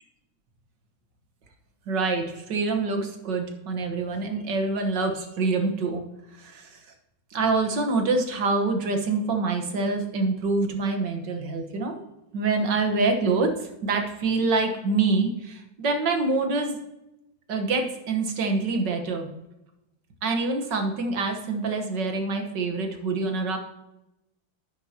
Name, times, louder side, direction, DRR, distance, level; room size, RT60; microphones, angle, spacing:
voice 1, 1.9-6.0 6.4-6.8 7.3-12.0 12.3-16.8 17.5-19.3 20.2-23.6, right 3 dB, 65° right, 5 dB, 1.9 m, -26 dB
10.5 x 9.4 x 2.9 m, 0.92 s
omnidirectional pair, 2.1 m